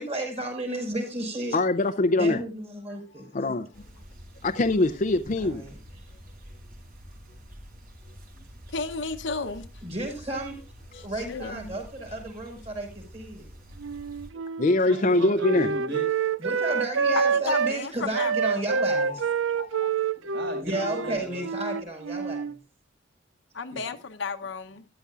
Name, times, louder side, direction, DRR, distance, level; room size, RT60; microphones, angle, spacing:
voice 1, 0.0-1.6 2.1-3.3 5.4-5.8 9.8-10.6 11.0-13.5 16.4-19.2 20.6-22.6, right 1 dB, 35° right, 4.8 m, -33 dB
voice 2, 1.5-2.4 3.3-3.7 4.4-5.6 14.6-15.7 19.0-19.3 19.5-19.9, left 2 dB, 40° left, 0.5 m, -23 dB
sound 1, 3.7-14.3, equal, 50° right, 4.1 m, -47 dB
voice 3, 8.7-9.7 11.1-11.8 12.1-12.2 17.2-18.6 23.5-24.8, left 4 dB, 70° left, 0.9 m, -33 dB
Wind instrument woodwind instrument, 13.8-17.8 18.1-22.6, right 6 dB, 85° right, 0.5 m, -27 dB
voice 4, 14.8-16.3 19.1-19.3 19.8-21.5 23.7-23.8, equal, 65° right, 5.3 m, -37 dB
13.5 x 11.5 x 2.4 m
head